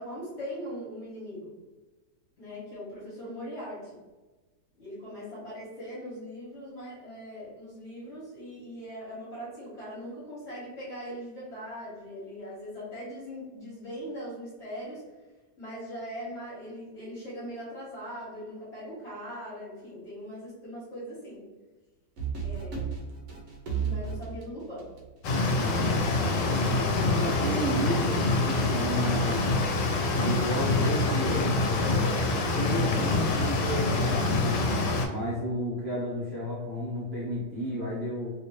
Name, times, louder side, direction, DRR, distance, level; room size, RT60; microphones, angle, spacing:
voice 1, 0.0-1.6 2.4-4.0 4.8-15.0 15.6-21.5 22.4-23.0 23.8-24.9, equal, 45° left, -8 dB, 1.3 m, -40 dB
sound 1, 22.2-25.6, right 6 dB, 65° right, 0.9 m, -33 dB
sound 2, 25.2-35.1, left 2 dB, 85° left, 1.2 m, -26 dB
voice 2, 26.0-26.8 27.1-29.6 30.2-34.7 35.1-38.3, equal, 45° right, -8 dB, 1.1 m, -33 dB
2.9 x 2.7 x 2.9 m, 1.2 s
omnidirectional pair, 1.8 m